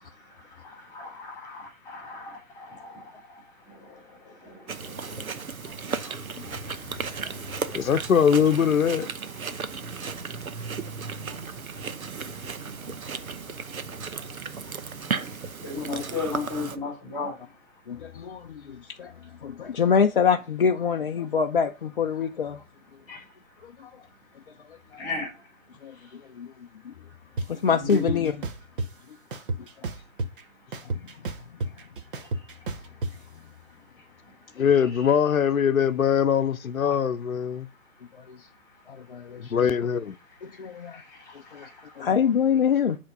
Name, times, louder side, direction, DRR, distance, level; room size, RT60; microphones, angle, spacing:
voice 1, 0.2-7.9 9.3-19.8 22.8-26.3 27.0-28.2 28.8-35.1 36.8-37.0 37.5-39.6 40.2-42.1, left 4 dB, 10° left, 2.4 m, -42 dB
Chewing mastication, 4.7-16.8, right 5 dB, 85° right, 0.9 m, -35 dB
voice 2, 7.7-9.1 34.6-37.7 39.4-40.2, left 8 dB, 75° left, 0.8 m, -22 dB
voice 3, 17.9-19.1 19.4-22.6 23.8-23.9 25.8-25.9 26.4-26.5 26.8-26.9 27.5-28.3 38.3-38.4 38.9-39.5 40.4-41.0 41.5-41.6 42.0-43.0, left 6 dB, 45° left, 0.5 m, -25 dB
sound 1, 27.4-27.5 27.9-28.9 29.3-30.4 30.7-33.1, right 2 dB, 40° right, 0.9 m, -31 dB
8.0 x 3.5 x 5.3 m
figure-of-eight pair, 145°, 41 cm